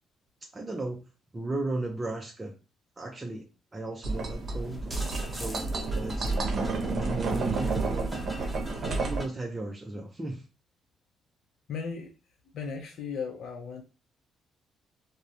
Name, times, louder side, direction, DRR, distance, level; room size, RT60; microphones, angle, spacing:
voice 1, 0.4-1.0 1.3-2.6 3.0-3.5 3.7-4.9 5.3-5.6 5.9-6.4 6.8-8.5 9.0-10.4, right 2 dB, 20° right, 0.4 m, -36 dB
sound 1, 4.0-9.2, right 3 dB, 55° right, 0.7 m, -30 dB
sound 2, 4.1-9.3, equal, ahead, 0.8 m, -43 dB
voice 2, 11.7-12.1 12.5-13.8, left 5 dB, 70° left, 0.5 m, -36 dB
2.3 x 2.0 x 2.8 m
cardioid pair, 90°, 0 cm